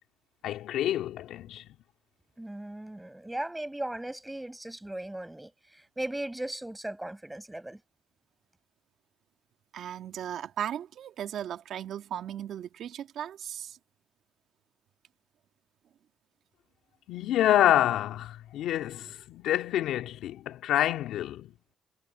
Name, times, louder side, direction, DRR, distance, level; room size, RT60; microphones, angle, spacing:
voice 1, 0.4-1.7 17.1-21.5, left 12 dB, 85° left, 2.8 m, -27 dB
voice 2, 2.4-7.8, right 1 dB, 10° right, 7.4 m, -37 dB
voice 3, 9.7-13.8, right 10 dB, 70° right, 2.4 m, -37 dB
cardioid pair, 90°, 0 cm